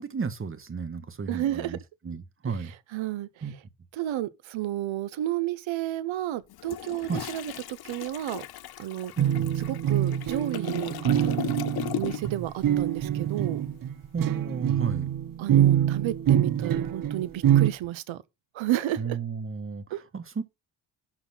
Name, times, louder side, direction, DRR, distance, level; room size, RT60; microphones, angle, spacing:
voice 1, 0.0-1.8 2.0-2.7 3.4-3.5 7.1-7.2 9.2-9.5 14.1-15.1 19.0-19.8 20.1-20.4, right 5 dB, 25° right, 1.3 m, -33 dB
voice 2, 1.3-1.8 2.9-3.3 3.9-8.4 8.8-9.1 9.7-11.4 11.9-13.6 15.4-18.2 18.5-19.2 19.9-20.0, right 13 dB, 85° right, 1.1 m, -31 dB
Toilet flush, 6.5-12.5 12.8-13.0, left 13 dB, 55° left, 0.6 m, -37 dB
sound 1, 9.2-17.7, right 11 dB, 45° right, 0.7 m, -25 dB
12.0 x 4.2 x 5.6 m
cardioid pair, 140°, 46 cm